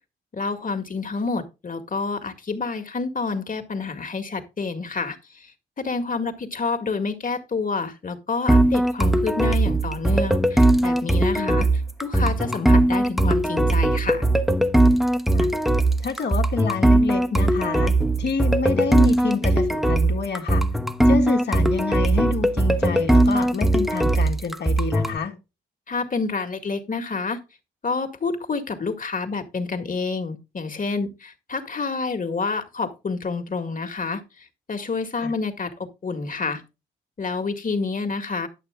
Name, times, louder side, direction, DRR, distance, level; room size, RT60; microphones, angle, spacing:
voice 1, 0.3-5.5 5.8-11.7 12.0-14.3 25.9-27.4 27.8-34.2 34.7-36.6 37.2-38.5, left 4 dB, 45° left, 2.0 m, -28 dB
sound 1, 8.5-25.2, right 1 dB, ahead, 1.1 m, -19 dB
voice 2, 16.0-17.9 18.2-20.6 21.0-25.4 35.2-35.3, left 5 dB, 60° left, 1.8 m, -28 dB
11.0 x 6.8 x 3.6 m
supercardioid pair, 55°, 20 cm